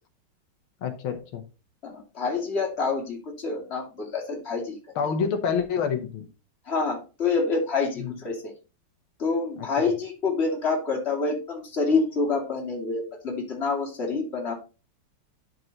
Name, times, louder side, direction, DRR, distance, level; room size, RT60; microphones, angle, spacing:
voice 1, 0.8-1.4 5.0-6.3 8.0-8.1 9.8-9.9, left 6 dB, 85° left, 6 dB, 1.9 m, -27 dB
voice 2, 1.8-4.8 6.7-8.5 9.2-14.5, left 4 dB, 30° left, 0 dB, 2.5 m, -27 dB
10.5 x 4.8 x 4.0 m, 0.32 s
omnidirectional pair, 2.2 m